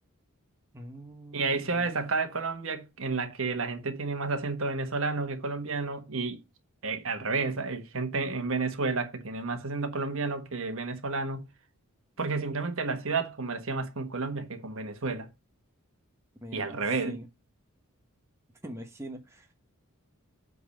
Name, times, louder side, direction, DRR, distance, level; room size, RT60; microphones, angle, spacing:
voice 1, 0.7-1.9 16.4-17.3 18.6-19.5, equal, 10° right, 1.1 m, -43 dB
voice 2, 1.3-6.4 6.8-11.5 12.2-15.3 16.5-17.2, right 3 dB, 60° right, 1.4 m, -31 dB
8.3 x 4.0 x 6.5 m
head